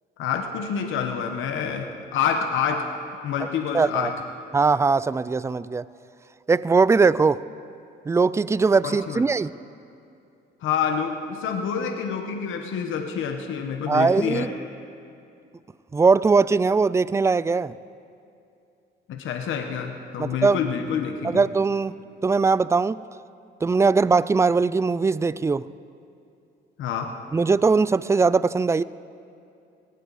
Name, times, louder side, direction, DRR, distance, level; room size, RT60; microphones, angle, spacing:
voice 1, 0.2-2.9 3.2-4.1 8.8-9.2 10.6-14.5 19.1-21.4 26.8-27.1, left 7 dB, 80° left, 4 dB, 1.2 m, -27 dB
voice 2, 3.7-4.1 4.5-5.8 6.5-7.4 8.1-9.5 13.9-14.5 15.9-17.7 20.2-20.6 21.2-21.9 22.2-23.0 23.6-25.7 27.3-28.8, right 4 dB, 15° right, 18 dB, 0.3 m, -20 dB
19.0 x 17.0 x 4.2 m, 2.6 s
cardioid pair, 90°, 20 cm